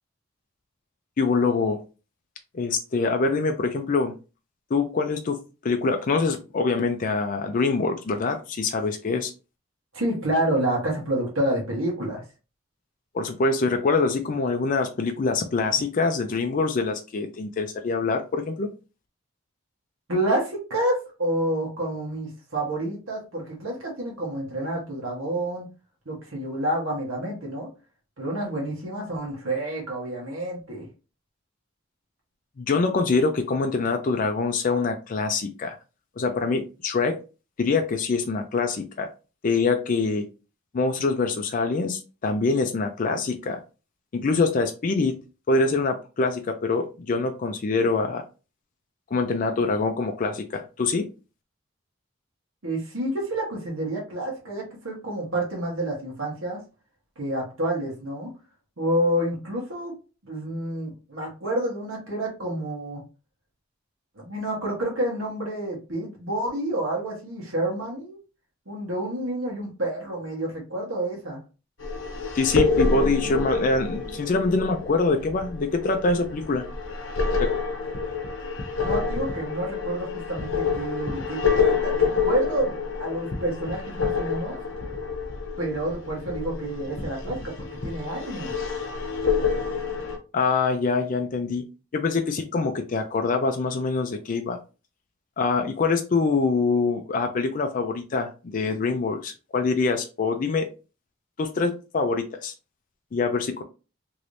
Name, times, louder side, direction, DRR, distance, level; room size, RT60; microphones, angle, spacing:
voice 1, 1.2-1.8 2.5-4.1 4.7-5.4 5.6-9.3 13.1-18.7 32.6-35.8 36.2-37.2 37.6-39.1 39.4-40.2 40.7-43.6 44.1-45.2 45.5-48.2 49.1-51.1 72.3-76.6 77.4-77.5 90.3-91.6 91.9-94.6 95.4-100.7 101.4-102.5 103.1-103.6, left 4 dB, 40° left, 5 dB, 0.4 m, -24 dB
voice 2, 9.9-12.2 20.1-25.7 26.0-27.7 28.2-30.9 52.6-56.6 57.2-58.3 58.8-59.9 60.2-63.0 64.1-68.2 68.7-71.4 78.8-84.6 85.6-87.5 87.8-88.5, right 1 dB, 90° right, -3 dB, 1.3 m, -29 dB
sound 1, 71.8-90.2, left 5 dB, 75° left, 0.8 m, -28 dB
3.2 x 3.0 x 2.6 m, 0.32 s
head